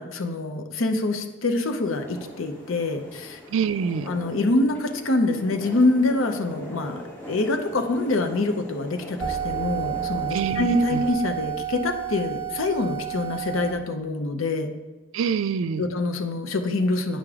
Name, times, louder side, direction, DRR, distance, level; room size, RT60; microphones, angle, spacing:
voice 1, 0.0-3.4 4.1-7.0 7.3-14.7 15.8-17.2, left 2 dB, 85° left, 6 dB, 0.7 m, -25 dB
sound 1, 1.8-11.1, equal, 10° left, 1.4 m, -41 dB
voice 2, 3.5-4.1 10.3-11.0 15.1-15.8, right 6 dB, 80° right, 13 dB, 0.4 m, -26 dB
sound 2, 9.2-13.7, right 11 dB, 15° right, 0.7 m, -30 dB
8.9 x 5.0 x 3.6 m, 1.1 s
head